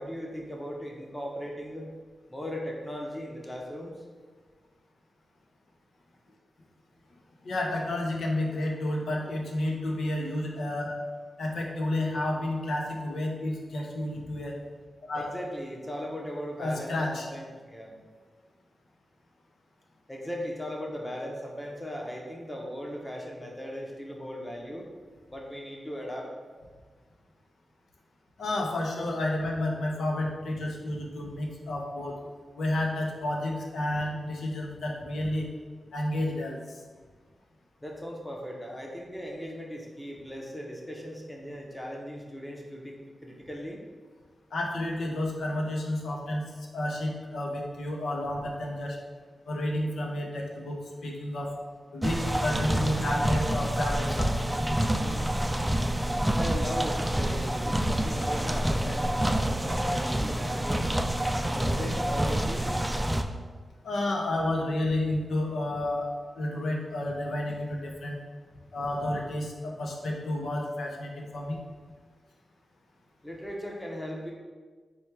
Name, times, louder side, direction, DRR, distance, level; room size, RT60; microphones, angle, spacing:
voice 1, 0.0-1.9 2.3-4.0 15.1-18.0 20.1-24.9 25.3-26.3 37.8-43.8 56.3-60.9 61.4-62.7 73.2-74.3, equal, 10° left, -1 dB, 0.9 m, -38 dB
voice 2, 7.4-11.0 11.4-14.6 15.1-15.3 16.6-17.3 28.4-32.1 32.6-35.5 35.9-36.6 44.5-49.0 49.5-51.5 51.9-55.1 63.8-68.2 68.7-71.6, left 1 dB, 80° left, 0 dB, 0.7 m, -31 dB
sound 1, 52.0-63.2, right 1 dB, 10° right, 0.3 m, -27 dB
4.4 x 2.3 x 4.5 m, 1.5 s
cardioid pair, 60°, 0 cm